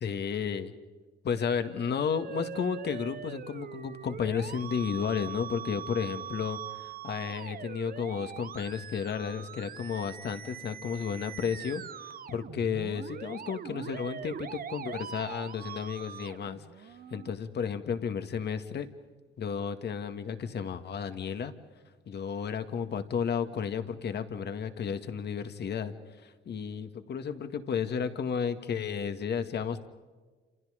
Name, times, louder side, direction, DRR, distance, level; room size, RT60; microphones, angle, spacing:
voice 1, 0.0-0.7 1.2-18.9 19.4-21.5 22.1-25.9 26.2-29.9, left 7 dB, 60° left, 9 dB, 1.9 m, -33 dB
Musical instrument, 1.4-17.3, right 8 dB, 45° right, 0.9 m, -42 dB
29.0 x 27.5 x 5.1 m, 1.4 s
cardioid pair, 90°, 20 cm